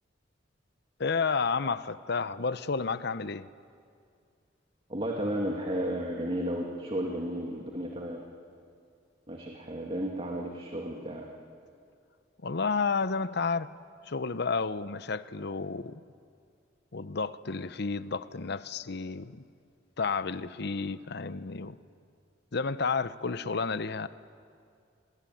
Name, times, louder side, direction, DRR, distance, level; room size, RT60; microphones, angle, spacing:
voice 1, 1.0-3.5 12.4-13.7 14.0-16.0 16.9-19.4 20.0-21.8 22.5-24.1, left 4 dB, 65° left, 14 dB, 0.8 m, -31 dB
voice 2, 4.9-8.2 9.3-11.3, equal, 30° right, 0 dB, 2.2 m, -33 dB
28.0 x 21.5 x 9.3 m, 2.3 s
head